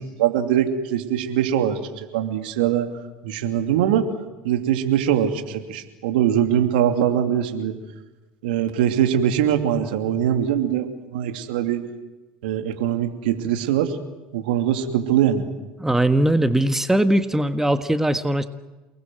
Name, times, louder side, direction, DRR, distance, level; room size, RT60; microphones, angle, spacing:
voice 1, 0.0-1.8 2.1-2.9 3.2-4.1 4.4-7.7 8.4-11.9 12.4-14.0 14.3-15.5, right 10 dB, 75° right, 6 dB, 2.8 m, -22 dB
voice 2, 15.8-18.5, right 1 dB, 5° right, 10 dB, 1.5 m, -20 dB
29.5 x 20.5 x 7.8 m, 1.2 s
hypercardioid pair, 75°, 5 cm